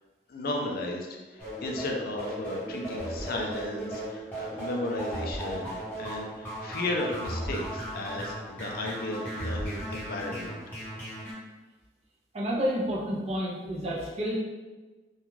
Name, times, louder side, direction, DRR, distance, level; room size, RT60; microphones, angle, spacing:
voice 1, 0.3-10.6, left 1 dB, 55° left, 1 dB, 0.4 m, -34 dB
sound 1, 1.4-11.3, equal, 10° left, 0.8 m, -36 dB
voice 2, 12.3-14.4, equal, 35° right, -4 dB, 0.5 m, -30 dB
2.4 x 2.2 x 3.1 m, 1.2 s
head